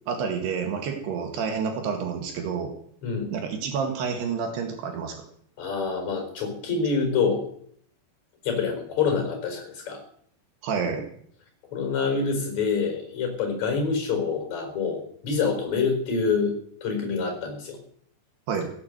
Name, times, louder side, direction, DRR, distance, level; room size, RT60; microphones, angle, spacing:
voice 1, 0.1-2.7 3.3-5.2 10.6-11.1 18.5-18.7, right 6 dB, 75° right, 4 dB, 3.9 m, -29 dB
voice 2, 3.0-3.3 5.6-7.4 8.4-10.0 11.7-16.5 16.8-17.8, left 5 dB, 45° left, 4 dB, 5.5 m, -26 dB
16.5 x 8.8 x 7.9 m, 0.63 s
omnidirectional pair, 4.9 m